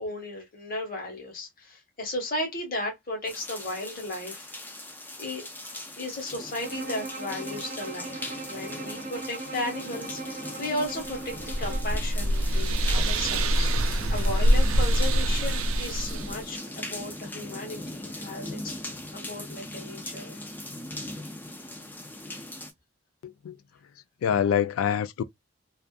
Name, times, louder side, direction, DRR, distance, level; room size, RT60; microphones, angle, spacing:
voice 1, 0.0-4.5 5.2-18.7 19.1-20.4, left 1 dB, 45° left, 1.0 m, -35 dB
sound 1, 3.3-22.7, left 1 dB, 10° left, 0.3 m, -40 dB
Bowed string instrument, 6.6-12.0, right 2 dB, 40° right, 0.6 m, -39 dB
sound 2, 11.1-16.4, right 1 dB, 80° right, 0.4 m, -24 dB
voice 2, 23.2-23.5 24.2-25.2, left 8 dB, 90° left, 0.3 m, -25 dB
2.5 x 2.4 x 2.2 m
head